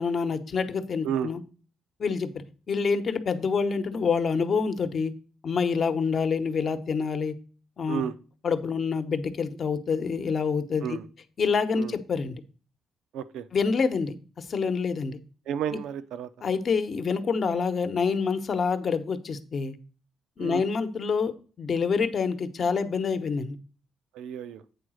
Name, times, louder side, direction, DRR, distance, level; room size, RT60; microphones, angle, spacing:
voice 1, 0.0-1.4 2.0-5.1 5.4-7.4 7.8-8.0 8.4-11.0 11.4-12.4 13.5-15.2 16.4-19.8 20.4-23.6, left 5 dB, 50° left, 10 dB, 0.9 m, -27 dB
voice 2, 13.1-13.5 15.5-16.3 20.4-20.6 24.1-24.6, right 9 dB, 85° right, 13 dB, 0.6 m, -32 dB
8.4 x 3.9 x 6.3 m, 0.38 s
cardioid pair, 90°, 0 cm